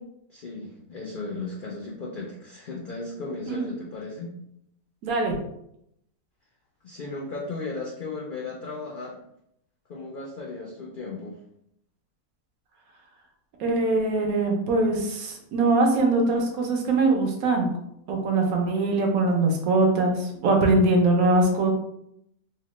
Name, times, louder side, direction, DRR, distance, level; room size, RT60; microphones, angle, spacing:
voice 1, 0.3-4.3 6.8-9.2 9.9-11.3, left 3 dB, 80° left, -3 dB, 0.4 m, -35 dB
voice 2, 5.0-5.3 13.6-17.7 18.1-21.7, right 2 dB, 80° right, 2 dB, 1.1 m, -22 dB
3.1 x 2.1 x 3.0 m, 0.76 s
omnidirectional pair, 1.5 m